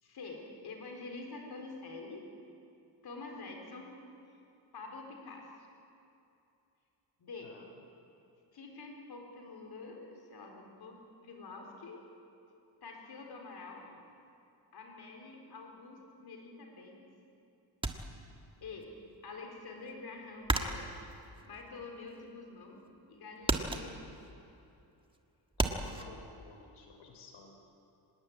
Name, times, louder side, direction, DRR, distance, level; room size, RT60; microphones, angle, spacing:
voice 1, 0.0-2.3 3.0-4.0 4.3-4.4 4.7-5.5 7.2-7.6 8.5-11.0 11.2-12.0 12.8-13.9 14.7-17.0 18.6-18.9 19.2-20.9 21.4-24.2, left 3 dB, 55° left, 2 dB, 4.5 m, -47 dB
voice 2, 7.4-7.8 25.6-27.6, left 4 dB, 85° left, 3 dB, 3.5 m, -54 dB
sound 1, 17.8-18.9 19.2-22.4 22.8-23.1 23.4-26.0, right 2 dB, 10° right, 1.5 m, -34 dB
25.5 x 20.5 x 8.8 m, 2.7 s
wide cardioid pair, 150°, 46 cm